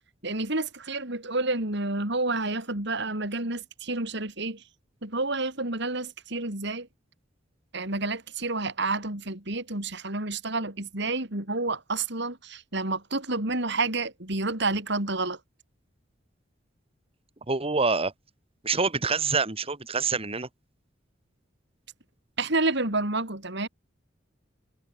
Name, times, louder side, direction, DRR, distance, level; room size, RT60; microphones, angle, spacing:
voice 1, 0.2-4.6 5.0-6.9 7.7-15.4 22.4-23.7, right 2 dB, 65° right, 5.1 m, -29 dB
voice 2, 17.5-18.1 18.6-20.5, right 4 dB, 30° right, 2.1 m, -26 dB
head